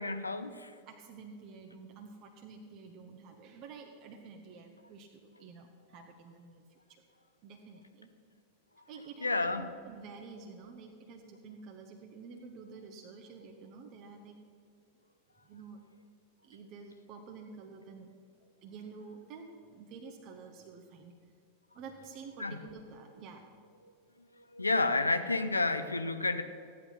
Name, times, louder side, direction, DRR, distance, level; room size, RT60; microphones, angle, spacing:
voice 1, 0.0-0.8 9.2-9.7 22.4-22.6 24.3-26.4, left 3 dB, 80° left, 10 dB, 0.8 m, -30 dB
voice 2, 0.9-7.0 7.4-8.1 8.9-14.4 15.4-15.8 16.4-21.1 21.7-23.6, right 5 dB, 40° right, 2 dB, 1.3 m, -50 dB
14.5 x 11.0 x 5.9 m, 2.4 s
figure-of-eight pair, 90°, 0 cm